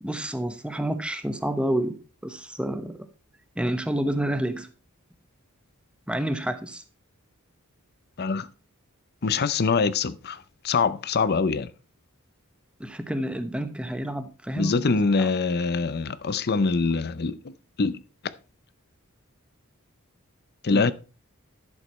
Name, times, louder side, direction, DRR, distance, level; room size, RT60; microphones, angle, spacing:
voice 1, 0.0-2.0 2.2-2.9 3.6-4.7 6.1-6.8 12.8-15.3 20.7-20.9, right 1 dB, 5° right, 0.9 m, -29 dB
voice 2, 9.2-11.7 14.6-18.0 20.6-20.9, left 4 dB, 45° left, 0.6 m, -24 dB
11.0 x 6.4 x 4.3 m
head